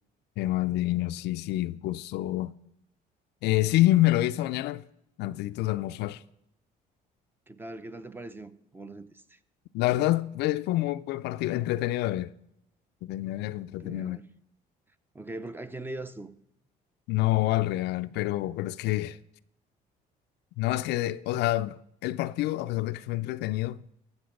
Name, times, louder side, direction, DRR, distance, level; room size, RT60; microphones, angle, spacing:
voice 1, 0.4-2.6 3.4-4.9 5.2-6.2 9.7-12.3 13.0-14.2 17.1-19.2 20.6-23.8, left 16 dB, 80° left, 0.4 m, -27 dB
voice 2, 7.5-9.4 13.8-14.3 15.1-16.3, right 2 dB, 10° right, 0.6 m, -41 dB
13.5 x 7.2 x 5.2 m
cardioid pair, 110°, 17 cm